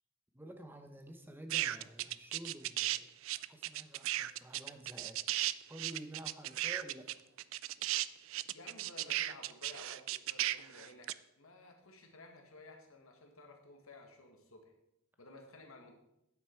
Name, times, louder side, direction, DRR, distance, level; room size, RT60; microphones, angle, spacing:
voice 1, 0.3-3.1 3.5-5.3 5.7-7.1, right 1 dB, 10° right, 6 dB, 0.8 m, -50 dB
sound 1, 1.5-3.0 3.2-11.1, right 15 dB, 65° right, 0.3 m, -35 dB
voice 2, 8.5-14.7 15.2-15.9, left 2 dB, 80° left, 4 dB, 1.7 m, -55 dB
9.5 x 8.2 x 4.5 m, 0.86 s
head